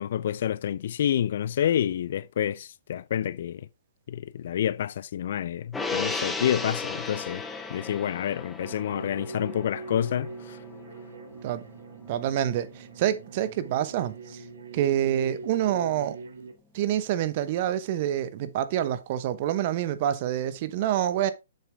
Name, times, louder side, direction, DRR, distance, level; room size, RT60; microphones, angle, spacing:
voice 1, 0.0-3.6 4.1-7.4 7.7-10.6, left 10 dB, 60° left, 0.4 m, -28 dB
Gong, 5.7-12.4 12.7-12.8, left 3 dB, 5° left, 1.1 m, -36 dB
sound 1, 8.6-16.5, right 3 dB, 75° right, 1.4 m, -42 dB
voice 2, 12.1-14.4 14.7-16.2 16.7-21.3, right 11 dB, 45° right, 0.8 m, -27 dB
7.1 x 6.1 x 3.5 m
hypercardioid pair, 135°, 0 cm